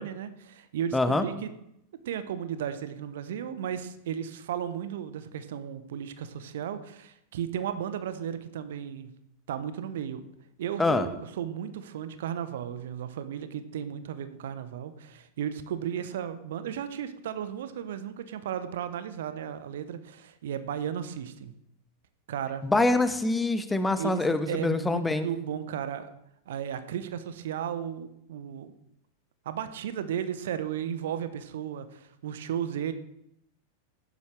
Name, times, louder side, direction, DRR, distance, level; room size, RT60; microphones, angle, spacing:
voice 1, 0.0-1.5 2.0-9.1 9.5-10.2 10.6-21.5 22.3-22.6 24.0-26.1 26.5-28.7 29.4-32.9, right 9 dB, 60° right, 11 dB, 0.9 m, -34 dB
voice 2, 0.9-1.2 10.8-11.1 22.6-25.3, left 2 dB, 10° left, 11 dB, 0.9 m, -25 dB
15.0 x 11.5 x 3.3 m, 0.79 s
figure-of-eight pair, 90°, 0 cm